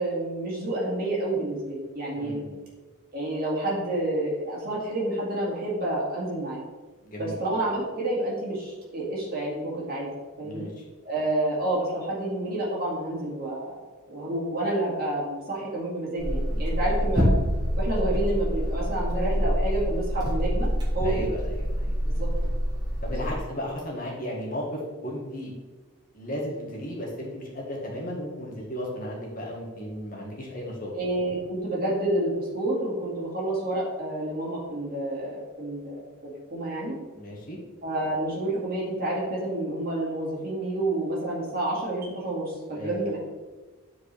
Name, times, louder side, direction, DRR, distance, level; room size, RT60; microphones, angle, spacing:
voice 1, 0.0-2.4 3.1-6.6 7.2-10.1 10.4-10.7 11.0-13.8 14.1-17.3 17.8-20.7 20.9-21.2 22.0-22.3 30.9-36.9 37.8-43.2, right 1 dB, 45° right, -5 dB, 2.2 m, -29 dB
voice 2, 2.1-2.6 7.0-7.4 10.4-10.8 16.4-16.6 21.0-22.0 23.0-25.5 26.1-30.9 37.1-37.6 42.7-43.2, equal, 40° left, -3 dB, 1.6 m, -35 dB
sound 1, 16.2-23.4, equal, 20° right, 1.3 m, -26 dB
10.5 x 4.7 x 3.4 m, 1.3 s
head